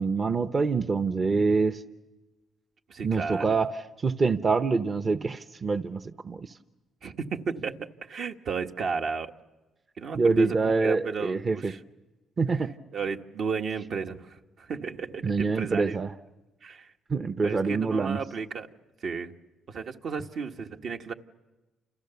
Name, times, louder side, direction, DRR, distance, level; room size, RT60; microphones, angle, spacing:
voice 1, 0.0-1.8 3.0-3.7 4.0-6.6 10.1-11.7 12.4-12.7 15.2-16.1 17.1-18.2, right 4 dB, 35° right, 10 dB, 0.8 m, -25 dB
voice 2, 2.9-3.6 7.0-9.3 10.0-11.8 12.9-16.0 16.6-16.9 17.4-18.7 19.0-19.3 19.7-21.1, right 5 dB, 65° right, 4 dB, 1.4 m, -33 dB
29.5 x 28.0 x 7.0 m, 1.1 s
cardioid pair, 90°, 0 cm